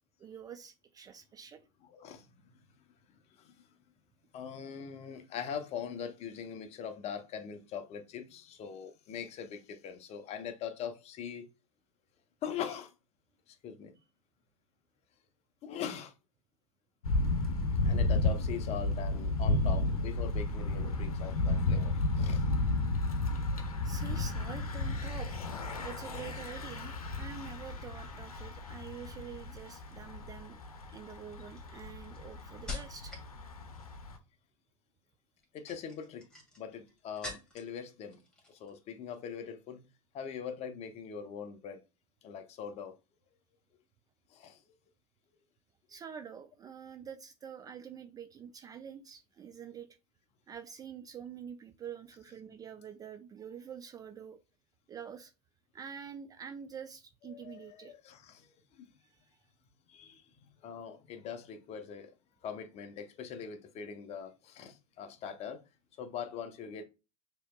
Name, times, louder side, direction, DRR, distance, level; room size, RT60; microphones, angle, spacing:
voice 1, 0.2-1.6 23.8-30.6 30.9-33.1 45.9-49.9 50.5-54.4 54.9-55.3 55.7-57.9, right 7 dB, 20° right, 0.3 m, -46 dB
voice 2, 1.9-2.7 3.3-3.7 4.3-11.5 12.4-12.9 13.5-13.9 15.6-16.1 17.8-22.4 35.5-36.3 36.6-38.2 38.5-39.8 40.1-41.8 42.2-42.9 44.3-44.6 57.3-58.9 59.9-62.1 62.4-65.6 66.0-66.8, left 7 dB, 35° left, 0.7 m, -42 dB
Thunder / Bicycle, 17.0-34.2, left 2 dB, 85° left, 0.7 m, -33 dB
sound 1, 29.9-30.2 30.9-33.3 33.6-34.1 35.4-37.8 38.1-38.8 39.0-39.3, left 3 dB, 5° left, 1.7 m, -46 dB
6.3 x 2.9 x 2.2 m
hypercardioid pair, 90°, 18 cm